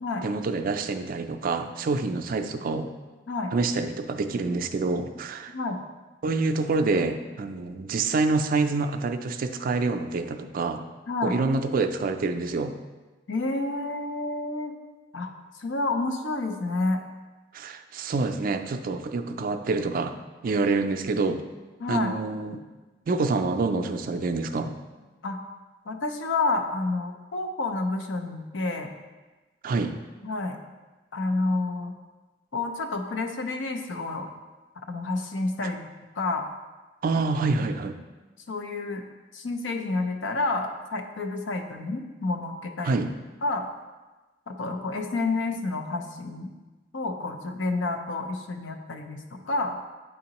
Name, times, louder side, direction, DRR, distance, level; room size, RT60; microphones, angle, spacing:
voice 1, 0.2-2.9 3.5-5.5 6.2-10.8 11.2-12.7 17.5-20.1 20.4-21.4 21.9-22.6 23.1-24.7 29.6-29.9 35.6-35.7 37.0-38.0 42.8-43.1, right 3 dB, 50° right, 7 dB, 0.4 m, -27 dB
voice 2, 5.5-5.8 11.1-11.4 13.3-14.7 15.1-17.0 21.8-22.1 25.2-25.4 25.9-28.9 30.2-30.6 31.1-31.9 32.5-34.3 34.9-35.9 36.2-36.4 38.5-39.0 39.3-43.0 43.4-43.7 44.5-46.5 46.9-49.8, left 3 dB, 85° left, 4 dB, 0.6 m, -29 dB
8.5 x 3.8 x 2.9 m, 1.2 s
head